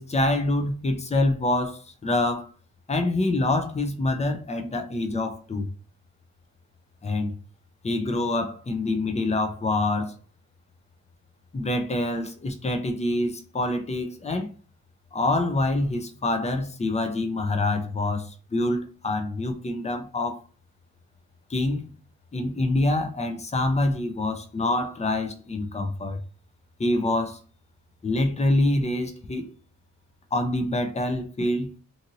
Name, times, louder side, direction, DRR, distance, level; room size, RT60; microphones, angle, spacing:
voice 1, 0.0-2.5 2.9-5.7 7.0-7.3 7.8-10.1 11.5-14.5 15.1-20.4 21.5-21.8 22.3-26.2 26.8-27.4 28.0-29.5 30.3-31.7, left 2 dB, 20° left, 0.4 m, -26 dB
2.6 x 2.6 x 2.8 m
wide cardioid pair, 125°, 31 cm